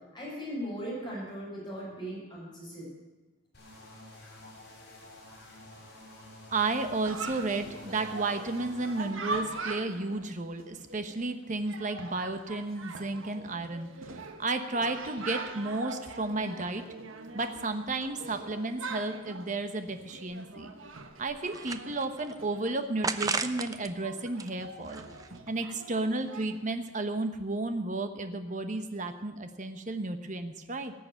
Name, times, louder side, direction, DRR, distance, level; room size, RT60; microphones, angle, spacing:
voice 1, 0.1-2.9, equal, 20° left, -7 dB, 6.4 m, -38 dB
sound 1, 3.5-9.1, left 1 dB, 55° left, 6.3 m, -50 dB
voice 2, 6.5-16.8 17.3-20.7 21.2-25.0 25.5-30.9, right 2 dB, 40° right, 8 dB, 1.0 m, -33 dB
Chatter, 7.0-26.6, right 3 dB, 80° right, 1.3 m, -42 dB
sound 2, 20.3-20.4 21.0-22.3 23.0-23.9 24.3-25.5, right 4 dB, 20° right, 0.5 m, -35 dB
18.5 x 6.9 x 8.9 m, 1.1 s
head